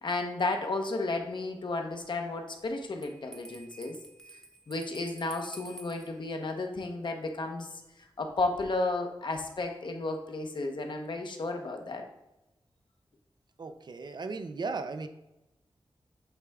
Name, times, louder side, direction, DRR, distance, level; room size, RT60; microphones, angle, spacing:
voice 1, 0.0-4.0 4.7-7.8 8.2-12.0, left 2 dB, 55° left, 4 dB, 0.8 m, -33 dB
Bell, 3.0-6.1, right 1 dB, 5° left, 0.8 m, -49 dB
voice 2, 13.6-15.1, right 4 dB, 50° right, 8 dB, 0.5 m, -36 dB
8.0 x 3.5 x 3.5 m, 0.95 s
wide cardioid pair, 125°, 9 cm